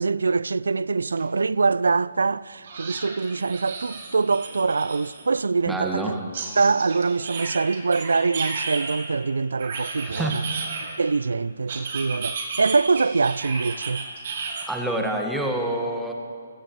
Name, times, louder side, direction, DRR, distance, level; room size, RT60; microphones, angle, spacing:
voice 1, 0.0-6.2 6.6-10.4 11.0-14.0, right 4 dB, 75° right, 0.3 m, -24 dB
sound 1, 1.2-1.3 1.6-1.7 2.6-5.2 6.3-9.1 9.6-11.1 11.7-14.6, right 4 dB, 50° right, 3.1 m, -33 dB
voice 2, 5.7-6.2 10.0-10.4 14.6-16.1, right 1 dB, 5° right, 1.6 m, -27 dB
25.5 x 14.5 x 3.2 m
figure-of-eight pair, 140°, 0 cm